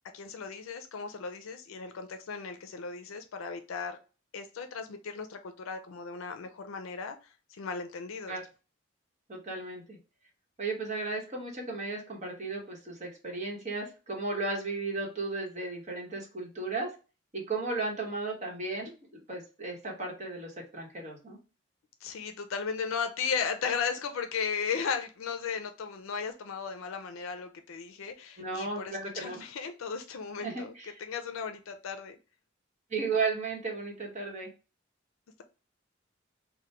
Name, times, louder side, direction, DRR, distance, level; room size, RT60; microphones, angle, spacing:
voice 1, 0.1-4.0 4.3-8.4 22.0-30.7 31.0-32.2, left 6 dB, 90° left, 7 dB, 0.4 m, -36 dB
voice 2, 9.3-10.0 10.6-16.9 17.3-18.9 19.3-21.4 28.4-29.5 30.4-31.0 32.9-34.5, right 3 dB, 35° right, -1 dB, 1.0 m, -35 dB
2.9 x 2.1 x 3.2 m, 0.33 s
head